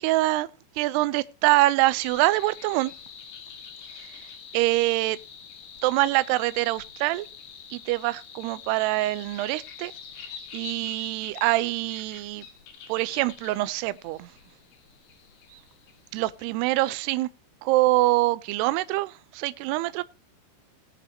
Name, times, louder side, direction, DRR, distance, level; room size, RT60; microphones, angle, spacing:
voice 1, 0.0-0.5 0.8-2.9 4.1-4.3 4.5-5.2 5.8-7.3 7.7-9.9 10.5-12.5 12.9-14.3 15.5-15.6 16.1-17.3 17.6-20.0, right 19 dB, 85° right, 2.3 m, -24 dB
sound 1, 2.0-16.5, left 7 dB, 60° left, 3.0 m, -46 dB
20.0 x 7.1 x 2.8 m
omnidirectional pair, 5.4 m